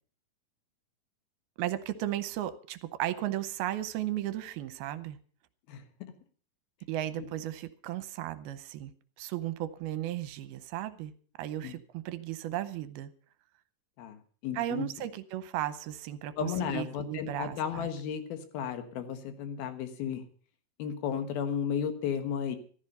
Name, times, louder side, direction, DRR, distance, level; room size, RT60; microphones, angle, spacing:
voice 1, 1.6-5.2 6.9-8.9 9.2-11.1 11.4-13.1 14.5-17.9, right 13 dB, 80° right, 14 dB, 2.6 m, -35 dB
voice 2, 5.7-6.1 7.2-7.3 11.6-11.7 14.0-14.9 16.4-20.3 20.8-22.6, left 8 dB, 75° left, 9 dB, 3.2 m, -34 dB
14.5 x 13.0 x 5.4 m, 0.43 s
omnidirectional pair, 4.5 m